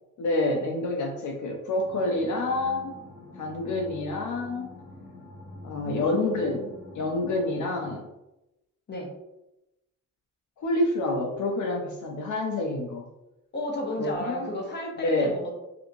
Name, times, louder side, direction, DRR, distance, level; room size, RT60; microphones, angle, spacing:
voice 1, 0.2-2.9 3.4-4.7 5.6-6.7 6.9-8.1 10.6-13.1 14.0-14.5 15.0-15.3, left 2 dB, 70° left, 0 dB, 0.5 m, -28 dB
sound 1, 1.8-7.9, left 2 dB, 5° right, 1.4 m, -45 dB
voice 2, 5.8-6.3 8.9-9.1 13.5-15.6, left 1 dB, 35° left, 0 dB, 0.7 m, -33 dB
2.7 x 2.5 x 2.5 m, 0.93 s
cardioid pair, 120°, 31 cm